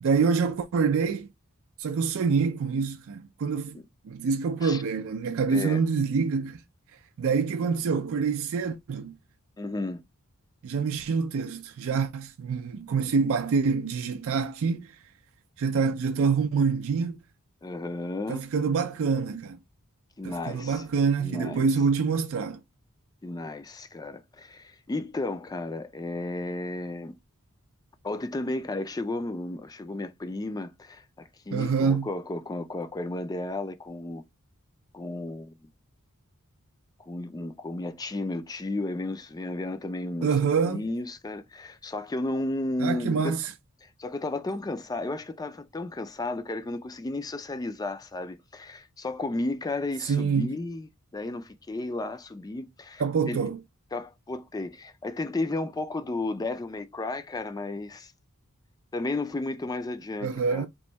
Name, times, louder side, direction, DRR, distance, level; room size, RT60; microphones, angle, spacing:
voice 1, 0.0-1.3 1.8-3.8 4.0-6.6 7.2-9.1 10.6-14.9 15.6-17.2 18.3-19.6 20.2-22.6 31.5-32.1 40.2-40.8 42.8-43.5 50.0-50.5 53.0-53.6 60.2-60.7, right 5 dB, 65° right, 0.4 m, -26 dB
voice 2, 5.5-5.8 9.6-10.0 17.6-18.5 20.2-20.8 21.2-21.7 23.2-27.1 28.0-34.2 34.9-35.5 37.0-40.3 40.6-43.4 43.8-50.9 51.1-53.0 53.3-53.4 53.9-58.1 58.9-60.7, left 2 dB, 15° left, 0.4 m, -33 dB
3.0 x 2.6 x 4.4 m
head